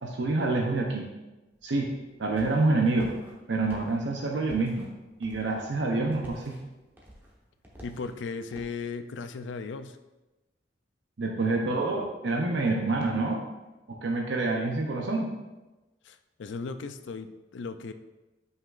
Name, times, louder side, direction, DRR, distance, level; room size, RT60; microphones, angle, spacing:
voice 1, 0.0-1.1 1.6-1.9 2.2-3.1 3.5-4.9 5.2-6.6 11.2-13.4 13.9-15.3, right 3 dB, 75° right, 0 dB, 0.7 m, -27 dB
sound 1, 1.5-8.8, equal, 10° right, 1.1 m, -51 dB
voice 2, 7.8-10.0 16.0-17.9, left 4 dB, 75° left, 10 dB, 0.4 m, -37 dB
7.8 x 5.6 x 2.5 m, 1.1 s
head